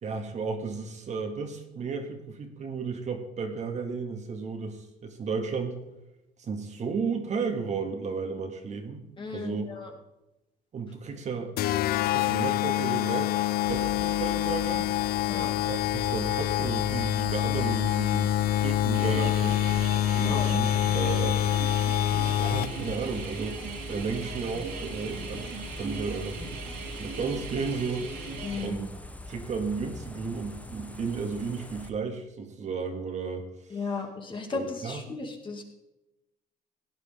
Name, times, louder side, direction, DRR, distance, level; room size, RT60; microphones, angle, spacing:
voice 1, 0.0-5.8 6.4-9.7 10.7-11.6 12.0-14.9 15.6-19.7 20.2-21.4 22.4-23.6 23.9-26.4 27.0-28.2 28.6-28.9 29.3-33.8 34.5-35.0, right 5 dB, 45° right, 4 dB, 2.1 m, -33 dB
voice 2, 9.2-9.9 15.3-15.5 20.2-20.5 28.4-28.8 33.7-35.6, left 4 dB, 30° left, 2 dB, 2.6 m, -35 dB
sound 1, 11.6-23.0, left 13 dB, 65° left, 0.4 m, -26 dB
sound 2, 13.6-31.9, left 1 dB, 10° left, 1.0 m, -42 dB
sound 3, 18.9-28.7, right 4 dB, 70° right, 3.3 m, -39 dB
17.0 x 9.7 x 3.7 m, 0.93 s
cardioid pair, 110°, 17 cm